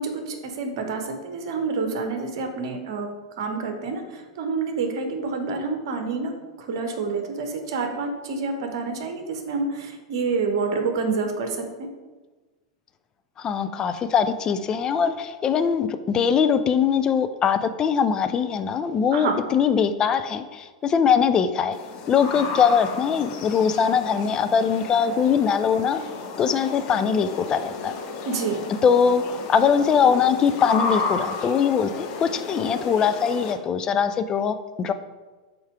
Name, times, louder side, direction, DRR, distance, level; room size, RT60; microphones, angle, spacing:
voice 1, 0.0-3.1 3.4-6.3 6.6-11.9 19.1-19.4 28.2-28.6, right 4 dB, 50° right, 5 dB, 1.1 m, -28 dB
voice 2, 13.4-21.8 22.1-26.0 26.4-27.9 28.8-34.9, left 7 dB, 25° left, 10 dB, 0.4 m, -22 dB
sound 1, 21.7-33.5, left 4 dB, 40° left, 0.8 m, -33 dB
5.5 x 4.6 x 4.9 m, 1.3 s
figure-of-eight pair, 95°, 3 cm